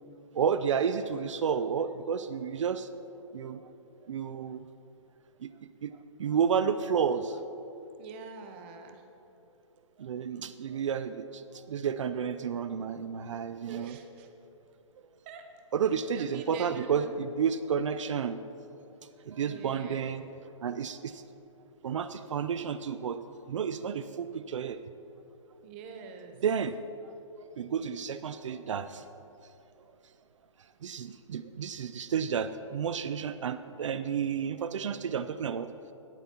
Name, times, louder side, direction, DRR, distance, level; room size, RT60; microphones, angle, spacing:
voice 1, 0.4-2.9 3.3-3.6 4.1-4.6 5.4-5.5 5.8-5.9 6.2-7.3 10.0-11.4 11.7-14.0 15.7-18.4 19.3-20.2 20.6-21.2 21.8-23.2 23.5-24.8 26.4-26.7 27.6-29.0 30.8-35.7, right 7 dB, 65° right, 12 dB, 0.4 m, -31 dB
voice 2, 8.0-9.0 13.7-14.3 15.3-15.4 16.1-17.2 19.5-20.1 25.6-26.3, right 5 dB, 20° right, 5 dB, 0.6 m, -44 dB
18.0 x 7.9 x 2.9 m, 2.9 s
hypercardioid pair, 165°, 17 cm